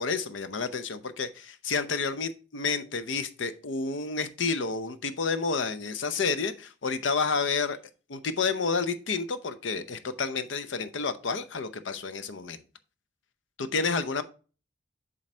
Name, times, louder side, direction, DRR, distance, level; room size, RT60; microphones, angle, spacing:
voice 1, 0.0-7.8 8.1-12.6 13.6-14.2, left 4 dB, 85° left, 0.6 m, -30 dB
7.4 x 4.0 x 4.3 m
head